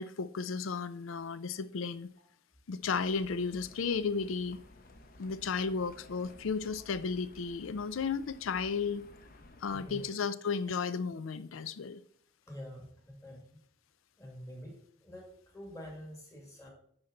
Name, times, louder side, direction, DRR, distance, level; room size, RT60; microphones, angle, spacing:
voice 1, 0.0-2.1 2.7-4.6 5.2-9.0 9.6-12.0, left 5 dB, 75° left, 0.4 m, -34 dB
Livestock farm animals working animals, 2.8-10.1, left 1 dB, 45° left, 0.7 m, -55 dB
voice 2, 9.7-10.0 12.5-13.6 14.2-16.7, equal, 15° left, 1.8 m, -47 dB
9.7 x 4.4 x 3.8 m
head